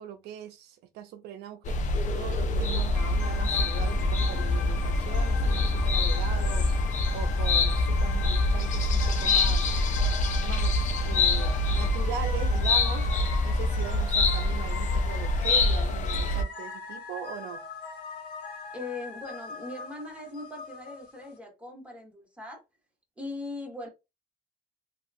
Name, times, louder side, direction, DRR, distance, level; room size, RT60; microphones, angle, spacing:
voice 1, 0.0-1.8 2.2-6.7 7.1-9.7 10.4-13.1 13.4-17.6, right 9 dB, 75° right, 0.5 m, -40 dB
sound 1, 1.6-16.4, left 2 dB, 45° left, 0.6 m, -25 dB
Music Box Damaged, 2.9-21.3, left 5 dB, 80° left, 1.0 m, -41 dB
voice 2, 18.7-22.6 23.2-23.9, left 2 dB, 5° right, 1.4 m, -40 dB
2.8 x 2.3 x 2.5 m
cardioid pair, 110°, 17 cm